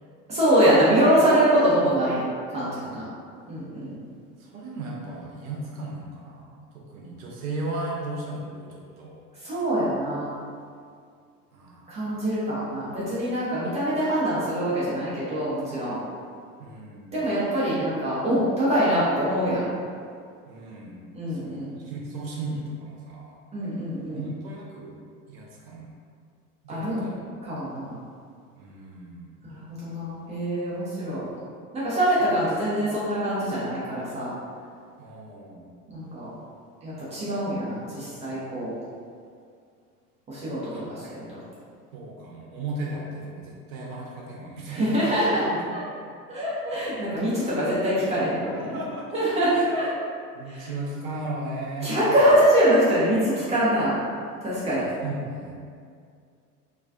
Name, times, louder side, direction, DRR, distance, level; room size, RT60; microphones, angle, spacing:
voice 1, 0.3-2.2 2.5-3.0 3.5-3.9 9.4-10.3 11.9-16.0 17.1-19.6 21.1-21.7 23.5-24.2 26.7-27.0 27.4-28.0 29.5-31.3 31.7-34.3 35.9-36.3 36.8-38.7 40.3-41.2 44.7-45.8 46.3-48.8 49.1-49.9 50.5-50.7 51.8-53.9 54.4-54.8, equal, 15° right, -10 dB, 0.4 m, -24 dB
voice 2, 2.8-3.3 4.4-9.2 11.5-12.1 16.6-17.3 20.5-23.4 24.1-25.0 25.3-25.9 26.6-27.2 28.6-29.3 31.1-31.4 35.0-35.6 40.7-41.3 41.9-45.1 45.4-45.7 48.5-49.1 49.5-49.9 50.3-52.0 54.7-55.5, right 2 dB, 60° right, -2 dB, 0.7 m, -36 dB
2.3 x 2.3 x 2.3 m, 2.2 s
figure-of-eight pair, 80°, 48 cm